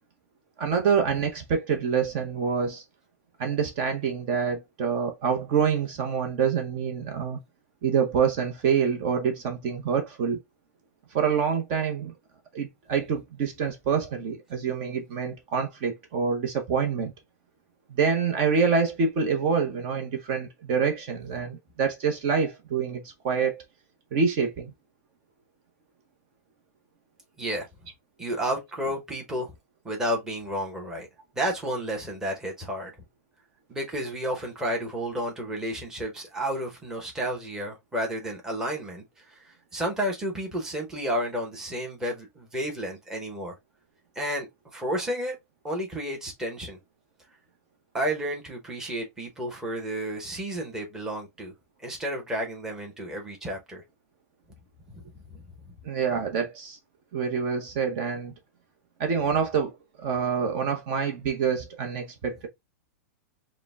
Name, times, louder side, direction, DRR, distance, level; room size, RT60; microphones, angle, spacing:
voice 1, 0.6-2.8 3.4-7.4 7.8-10.4 11.1-12.1 12.5-17.1 17.9-23.6 24.1-24.7 55.8-56.8 57.1-58.3 59.0-62.5, right 6 dB, 40° right, 0.8 m, -26 dB
voice 2, 28.2-29.5 29.8-31.1 31.3-32.9 33.7-43.5 44.1-44.5 44.7-45.4 45.6-46.8 47.9-51.5 51.8-53.8 54.9-55.0 55.3-55.4, equal, 5° right, 1.0 m, -31 dB
4.8 x 2.1 x 3.4 m
supercardioid pair, 160°, 9 cm